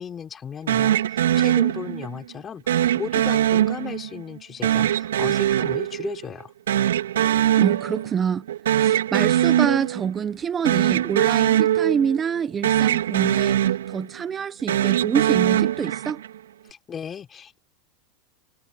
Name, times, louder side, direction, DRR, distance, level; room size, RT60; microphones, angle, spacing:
voice 1, 0.0-6.5 16.7-17.6, left 7 dB, 30° left, 4.8 m, -35 dB
sound 1, 0.7-2.2 2.7-4.2 4.6-6.4 6.7-8.2 8.5-10.2 10.6-12.4 12.6-14.2 14.6-16.3, right 11 dB, 85° right, 4.3 m, -22 dB
voice 2, 7.6-8.4 8.7-13.6 13.9-16.2, right 7 dB, 25° right, 1.2 m, -26 dB
hypercardioid pair, 100°, 0 cm